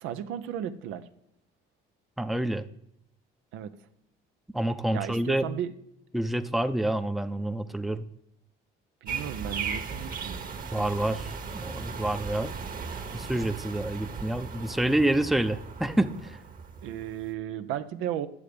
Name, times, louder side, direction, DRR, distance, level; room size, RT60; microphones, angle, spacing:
voice 1, 0.0-1.0 3.5-3.7 4.9-5.7 9.0-10.4 16.8-18.3, right 10 dB, 85° right, 10 dB, 0.8 m, -34 dB
voice 2, 2.2-2.7 4.5-5.5 6.1-8.0 10.7-12.5 13.1-16.4, right 1 dB, ahead, 10 dB, 0.6 m, -28 dB
sound 1, 9.1-17.3, right 5 dB, 45° right, 1.4 m, -37 dB
9.6 x 7.0 x 5.0 m, 0.76 s
cardioid pair, 90°, 20 cm